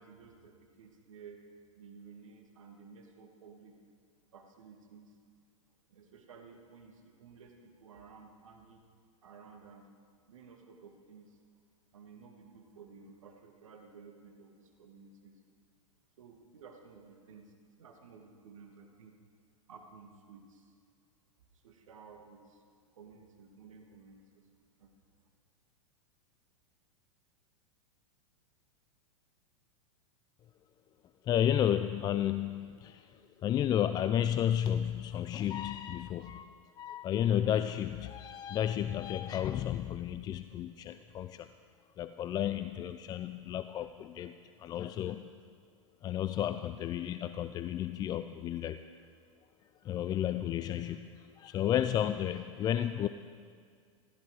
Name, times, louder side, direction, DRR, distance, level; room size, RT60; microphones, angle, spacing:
voice 1, 0.0-1.4 1.7-3.8 4.3-5.2 5.9-8.9 9.2-9.9 10.3-11.4 11.9-15.4 16.2-17.5 17.8-19.2 19.7-20.7 21.5-22.6 22.9-24.4 24.8-24.9, right 5 dB, 70° right, 3 dB, 1.9 m, -54 dB
voice 2, 31.2-36.5 36.8-41.5 42.0-45.4 46.0-48.8 49.8-53.1, left 10 dB, 25° left, 11 dB, 0.4 m, -32 dB
15.5 x 14.5 x 4.8 m, 2.1 s
figure-of-eight pair, 100°, 17 cm